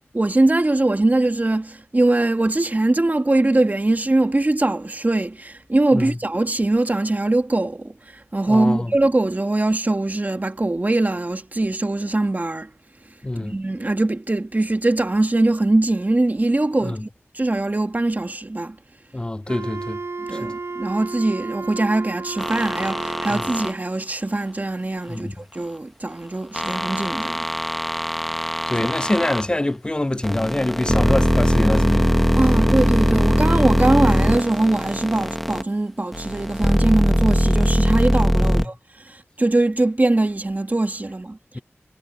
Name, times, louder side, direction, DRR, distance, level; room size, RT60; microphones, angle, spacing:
voice 1, 0.1-12.7 13.4-17.1 17.3-18.8 20.3-27.5 28.8-28.9 32.4-38.7 39.1-41.6, right 2 dB, 35° right, 1.8 m, -22 dB
voice 2, 8.5-8.9 13.2-13.6 16.8-17.0 19.1-20.0 20.4-20.5 23.3-23.4 25.1-25.3 28.7-32.1 38.4-38.6 41.5-41.6, left 1 dB, 20° left, 0.5 m, -25 dB
Wind instrument woodwind instrument, 19.5-23.8, right 4 dB, 70° right, 5.0 m, -33 dB
sound 1, 22.4-23.7 26.5-29.5 30.2-35.6 36.1-38.7, equal, ahead, 1.5 m, -20 dB
cardioid pair, 45°, 5 cm